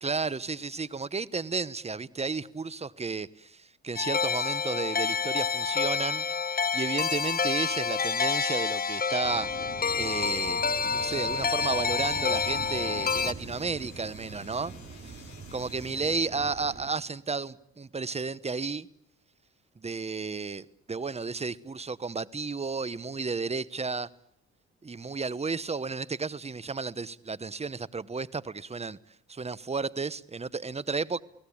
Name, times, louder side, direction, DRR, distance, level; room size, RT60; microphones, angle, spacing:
voice 1, 0.0-6.2 6.7-9.5 10.0-14.7 15.0-15.2 15.5-18.9 19.8-24.1 24.8-29.0 29.3-31.2, right 4 dB, 20° right, 1.0 m, -33 dB
jinglebell chime, 3.9-13.3, left 5 dB, 30° left, 1.0 m, -28 dB
sound 1, 9.2-16.9, right 4 dB, 40° right, 4.9 m, -43 dB
sound 2, 10.8-16.2, left 10 dB, 70° left, 7.0 m, -55 dB
29.5 x 18.5 x 8.7 m
cardioid pair, 90°, 30 cm